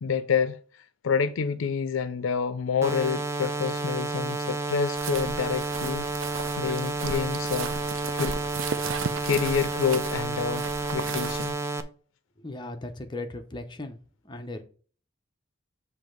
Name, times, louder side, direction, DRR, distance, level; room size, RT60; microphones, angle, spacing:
voice 1, 0.0-6.1 6.6-7.7 8.1-8.4 9.2-11.6, left 6 dB, 85° left, 0.4 m, -28 dB
sound 1, 2.8-11.8, right 3 dB, 15° right, 0.5 m, -31 dB
sound 2, 5.0-11.5, right 5 dB, 80° right, 0.6 m, -35 dB
voice 2, 12.4-14.0 14.2-14.6, left 2 dB, 25° left, 0.7 m, -37 dB
7.5 x 3.2 x 5.1 m
head